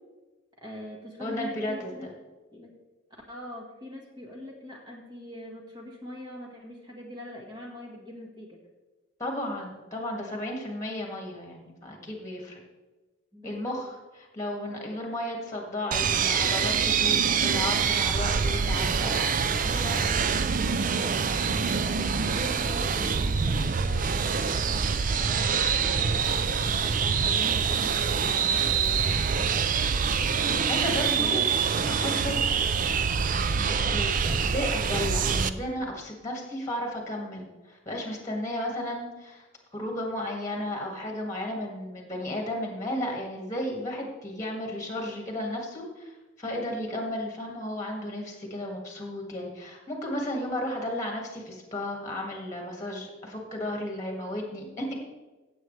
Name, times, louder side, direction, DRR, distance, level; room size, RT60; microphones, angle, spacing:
voice 1, 0.6-2.1 2.5-2.7 3.3-8.6 13.3-13.8 21.8-26.3 26.8-29.7 30.8-31.6 32.2-32.5, left 1 dB, 20° right, -1 dB, 1.6 m, -42 dB
voice 2, 1.2-2.1 9.2-12.6 13.4-13.9 14.3-20.4 30.4-31.5 31.9-32.3 33.5-39.4 39.7-55.1, left 1 dB, 15° left, 0 dB, 2.0 m, -34 dB
sound 1, 15.9-35.5, right 6 dB, 45° right, 0.4 m, -25 dB
16.5 x 7.7 x 3.3 m, 1.2 s
head